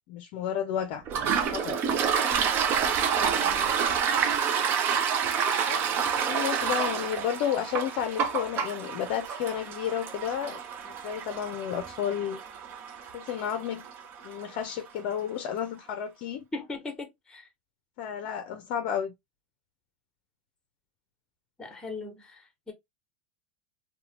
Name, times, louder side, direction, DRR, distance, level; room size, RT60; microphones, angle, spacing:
voice 1, 0.1-1.0 1.5-1.8 5.7-10.6 10.8-12.4 13.1-13.8 14.2-16.4 18.0-19.1, left 9 dB, 55° left, 0.5 m, -32 dB
Toilet flush, 1.1-14.4, right 7 dB, 40° right, 0.6 m, -28 dB
voice 2, 3.2-3.8 16.5-17.5 21.6-22.7, left 2 dB, 15° left, 1.1 m, -39 dB
2.7 x 2.1 x 2.8 m
hypercardioid pair, 100°, 5 cm